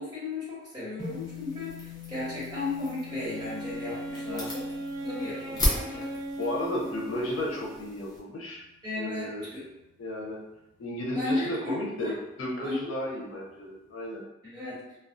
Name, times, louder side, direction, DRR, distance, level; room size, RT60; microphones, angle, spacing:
voice 1, 0.0-4.6 5.0-6.1 8.8-9.6 11.1-12.1 12.6-12.8 14.4-14.8, left 2 dB, 20° right, -10 dB, 1.2 m, -35 dB
sound 1, 1.0-9.4, left 9 dB, 40° left, 1.0 m, -46 dB
sound 2, 1.0-8.2, left 1 dB, 20° left, 0.6 m, -36 dB
Wind instrument woodwind instrument, 3.1-7.9, right 1 dB, 75° right, 0.6 m, -38 dB
voice 2, 6.4-8.6 9.0-9.5 10.0-10.4 10.8-12.1 12.4-14.2, left 1 dB, 90° left, -3 dB, 0.6 m, -33 dB
2.2 x 2.1 x 2.6 m, 0.90 s
head